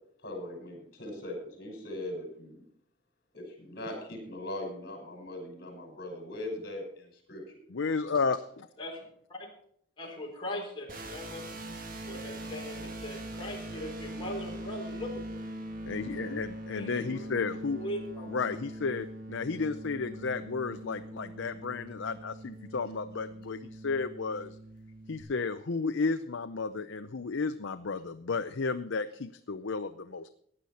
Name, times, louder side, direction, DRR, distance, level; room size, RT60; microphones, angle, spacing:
voice 1, 0.2-2.6 3.3-7.6, left 1 dB, 45° left, 2 dB, 5.4 m, -40 dB
voice 2, 7.7-8.7 15.9-17.8 18.3-24.6 25.1-30.3, left 4 dB, 65° left, 9 dB, 0.6 m, -33 dB
voice 3, 10.0-11.5 12.1-15.4 16.7-17.1 17.7-18.3, left 1 dB, 25° left, -2 dB, 4.2 m, -40 dB
sound 1, 10.9-25.2, right 1 dB, 40° right, 1.7 m, -42 dB
16.0 x 9.9 x 4.3 m, 0.66 s
head